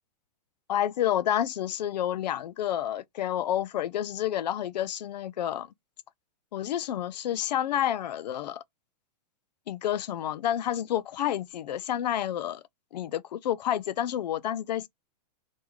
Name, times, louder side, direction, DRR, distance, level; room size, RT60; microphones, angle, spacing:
voice 1, 0.7-5.7 6.5-8.6 9.7-12.6 12.9-14.9, left 11 dB, 80° left, 0.5 m, -29 dB
3.6 x 2.4 x 4.5 m
supercardioid pair, 170°, 21 cm